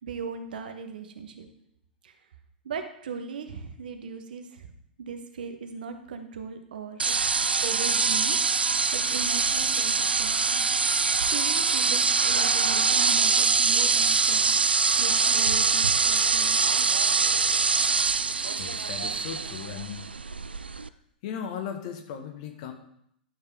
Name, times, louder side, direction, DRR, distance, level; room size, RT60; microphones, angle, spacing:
voice 1, 0.0-1.5 2.0-2.1 2.6-4.7 5.0-7.2 7.6-10.6 11.3-14.5 15.0-16.6, right 5 dB, 60° right, 7 dB, 1.1 m, -38 dB
sound 1, 7.0-20.9, right 4 dB, 80° right, 0.3 m, -24 dB
voice 2, 18.6-20.2 21.2-22.7, left 8 dB, 45° left, 5 dB, 1.3 m, -37 dB
11.5 x 6.6 x 3.6 m, 0.72 s
figure-of-eight pair, 100°, 5 cm